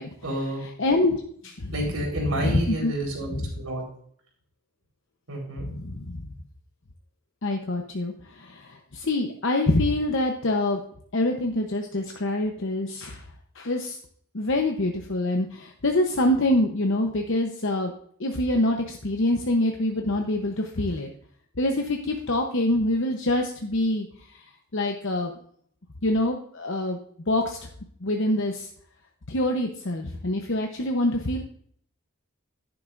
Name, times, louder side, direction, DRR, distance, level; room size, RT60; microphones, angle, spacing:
voice 1, 0.2-0.6 1.7-3.8 5.3-5.7, right 1 dB, 75° right, 0 dB, 4.3 m, -30 dB
voice 2, 0.8-1.7 2.4-2.9 3.4-3.5 5.6-6.3 7.4-10.8 11.1-13.3 13.5-14.0 14.3-17.9 18.2-21.1 21.6-24.4 24.7-25.3 26.0-27.0 27.3-27.6 28.0-28.7 29.3-31.4, left 1 dB, 55° left, 2 dB, 0.9 m, -25 dB
11.0 x 10.5 x 2.6 m, 0.62 s
head